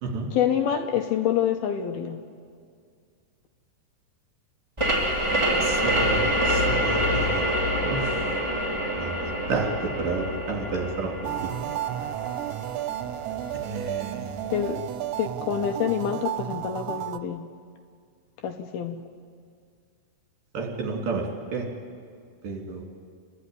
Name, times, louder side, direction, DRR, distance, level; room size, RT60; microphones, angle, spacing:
voice 1, 0.3-2.2 14.5-14.8 15.2-17.5 18.4-19.0, left 9 dB, 80° left, 5 dB, 2.4 m, -27 dB
sound 1, 4.8-14.1, equal, 15° right, 1.2 m, -26 dB
voice 2, 5.6-7.5 7.8-8.2 9.0-9.7 10.0-11.1 13.6-14.4 20.5-21.3 21.5-21.7 22.4-22.8, right 4 dB, 55° right, 0 dB, 4.1 m, -31 dB
sound 2, 11.2-17.2, right 13 dB, 80° right, 2.9 m, -32 dB
30.0 x 11.5 x 9.6 m, 2.2 s
omnidirectional pair, 5.0 m